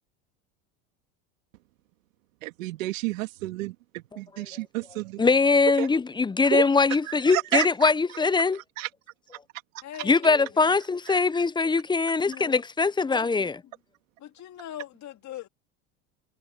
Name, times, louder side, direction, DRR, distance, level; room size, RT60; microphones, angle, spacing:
voice 1, 2.4-5.2 5.8-5.9 6.5-6.7 7.1-7.9 8.8-8.9 11.1-11.2, right 19 dB, 80° right, 2.3 m, -31 dB
voice 2, 5.2-8.6 10.0-13.6, left 4 dB, 10° left, 0.6 m, -22 dB
voice 3, 9.8-10.7 12.3-12.6 13.1-13.7 14.2-15.5, left 11 dB, 45° left, 2.3 m, -42 dB
hypercardioid pair, 90°, 39 cm